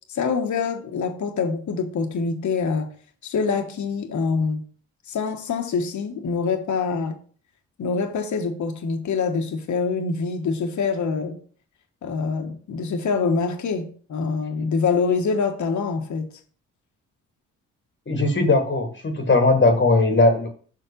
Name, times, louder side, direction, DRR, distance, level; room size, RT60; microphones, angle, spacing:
voice 1, 0.1-2.9 3.2-4.6 5.1-7.2 7.8-11.4 12.0-16.3, left 5 dB, 60° left, 1.3 m, -25 dB
voice 2, 18.1-20.5, left 2 dB, 35° left, 1.5 m, -19 dB
5.8 x 4.7 x 5.2 m
supercardioid pair, 55°, 34 cm